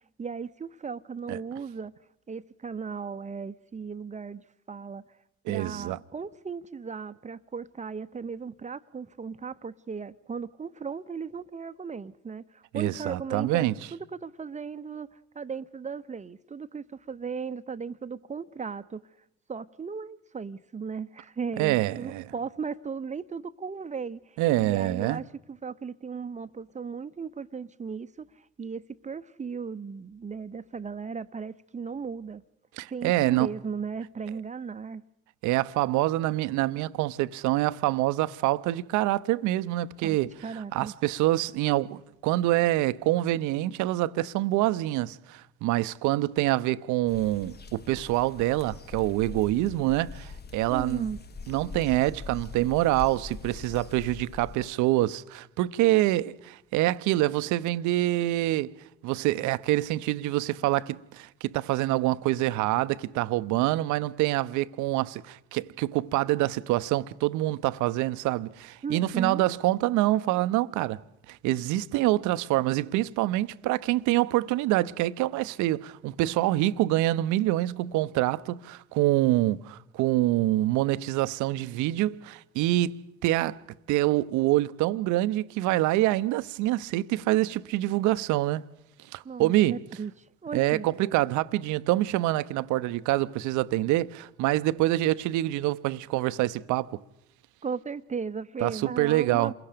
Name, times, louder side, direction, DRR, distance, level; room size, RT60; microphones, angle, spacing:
voice 1, 0.2-1.9 2.3-4.4 4.7-5.0 5.5-15.1 15.3-19.0 19.5-28.3 28.6-32.4 32.9-35.0 40.0-40.2 40.4-40.9 50.7-51.2 68.8-69.4 89.2-90.1 90.4-90.9 97.6-99.5, right 5 dB, 20° right, 0.8 m, -36 dB
voice 2, 5.5-6.0 12.7-13.7 21.6-22.3 24.4-25.2 32.8-33.5 35.4-51.1 51.5-58.7 59.0-71.0 71.3-83.6 83.9-88.6 89.1-89.8 90.5-97.0 98.6-99.5, right 16 dB, 55° right, 0.8 m, -26 dB
sound 1, 47.1-54.7, left 4 dB, 30° left, 1.2 m, -42 dB
28.0 x 22.0 x 5.1 m
hypercardioid pair, 55°, 34 cm